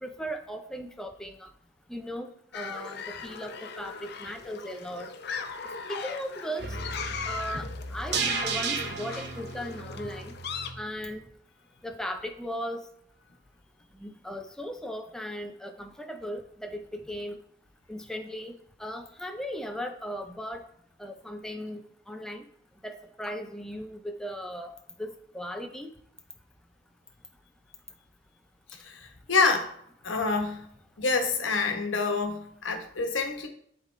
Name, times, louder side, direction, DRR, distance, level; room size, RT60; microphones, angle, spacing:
voice 1, 0.0-1.5 1.9-5.1 5.9-6.8 7.2-10.3 10.8-11.2 11.8-12.8 14.0-17.4 17.9-18.5 18.8-20.6 21.0-22.4 22.8-25.9, equal, 5° left, 4 dB, 0.4 m, -37 dB
sound 1, 2.5-10.7, left 5 dB, 55° left, 0.6 m, -39 dB
sound 2, 6.6-10.8 11.1-11.2, right 4 dB, 60° right, 0.8 m, -34 dB
voice 2, 28.8-29.7 30.0-30.7 31.0-33.5, left 4 dB, 80° left, 5 dB, 1.1 m, -27 dB
11.0 x 3.7 x 3.3 m, 0.67 s
head